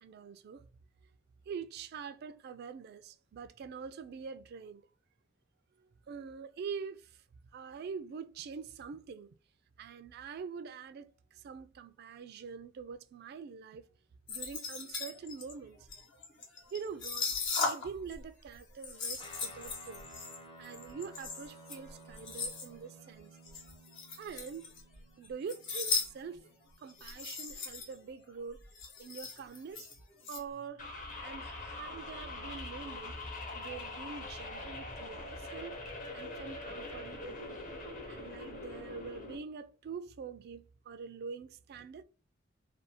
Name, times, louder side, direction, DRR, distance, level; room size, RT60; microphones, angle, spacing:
voice 1, 0.0-0.7 1.5-4.9 5.8-7.2 7.5-9.3 9.8-13.8 14.3-15.8 16.7-17.3 17.6-20.0 20.6-23.4 24.2-24.7 25.2-26.4 26.8-28.6 29.0-29.9 30.3-30.9 31.2-33.1 33.5-35.8 36.1-37.6 38.1-42.0, right 6 dB, 50° right, 0.3 m, -45 dB
sound 1, 14.3-18.2 18.4-22.7 23.4-25.0 25.2-26.1 26.3-26.5 26.9-28.0 28.3-28.4 28.5-30.4, left 4 dB, 65° left, 0.9 m, -38 dB
Guitar, 19.2-27.9, right 1 dB, 25° left, 0.6 m, -55 dB
sound 2, 30.8-39.4, left 2 dB, 40° left, 0.9 m, -43 dB
2.6 x 2.3 x 2.7 m
head